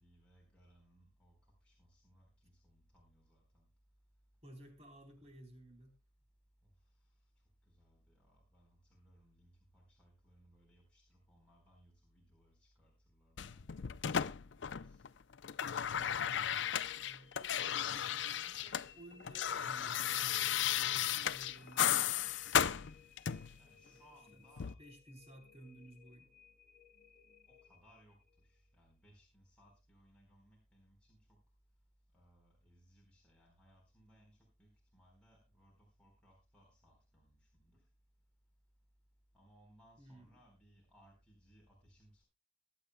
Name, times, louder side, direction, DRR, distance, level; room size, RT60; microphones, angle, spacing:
voice 1, 0.0-1.4 1.6-3.6 7.8-15.1 23.6-24.7 27.5-28.2 28.4-31.4 32.1-37.8 39.3-42.2, equal, 5° left, -3 dB, 4.1 m, -66 dB
voice 2, 4.4-5.9 17.0-20.3 20.8-22.2 23.8-24.0 24.3-24.5 24.8-26.3 40.0-40.4, right 1 dB, 35° right, 3 dB, 3.8 m, -57 dB
sound 1, 13.4-15.1 15.3-18.9 19.1-23.6 24.6-24.7, left 9 dB, 85° left, 0.5 m, -35 dB
sound 2, 16.6-28.7, left 7 dB, 50° left, 2.9 m, -62 dB
23.0 x 9.0 x 2.2 m, 0.27 s
head